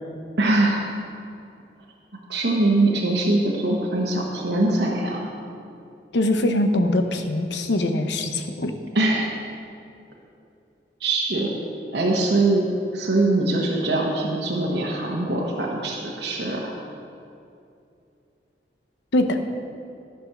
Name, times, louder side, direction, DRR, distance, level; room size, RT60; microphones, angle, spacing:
voice 1, 0.4-0.8 2.3-5.3 8.9-9.3 11.0-11.5 11.9-12.7 12.9-16.7, right 2 dB, 70° right, -3 dB, 1.1 m, -22 dB
voice 2, 6.1-8.7 19.1-19.4, left 1 dB, 80° left, 6 dB, 0.8 m, -22 dB
11.5 x 6.1 x 6.1 m, 2.6 s
head